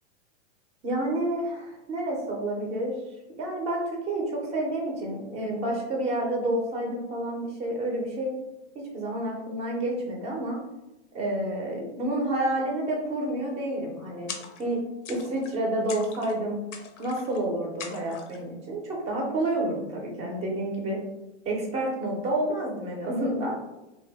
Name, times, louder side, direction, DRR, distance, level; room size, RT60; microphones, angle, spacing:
voice 1, 0.8-2.9 3.4-8.3 8.7-10.6 11.1-14.3 14.6-14.8 15.1-16.6 17.0-21.0 21.5-23.6, right 1 dB, 20° right, -1 dB, 0.4 m, -29 dB
sound 1, 14.3-14.8 15.0-15.6 15.9-16.4 16.7-17.4 17.8-18.4, left 6 dB, 85° left, 0.6 m, -41 dB
2.6 x 2.0 x 3.3 m, 0.99 s
hypercardioid pair, 140°, 36 cm